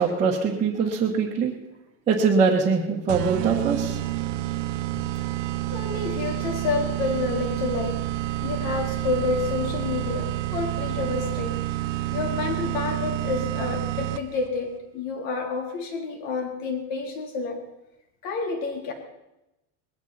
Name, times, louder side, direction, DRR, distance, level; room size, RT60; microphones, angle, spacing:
voice 1, 0.0-1.5 2.1-4.0, right 5 dB, 20° right, -5 dB, 1.5 m, -22 dB
sound 1, 3.1-14.5, right 15 dB, 70° right, 0.8 m, -29 dB
voice 2, 5.7-8.0 8.4-11.6 12.1-17.6 18.2-18.9, left 4 dB, 65° left, 2 dB, 3.7 m, -29 dB
20.5 x 15.5 x 4.3 m, 0.94 s
cardioid pair, 175°, 38 cm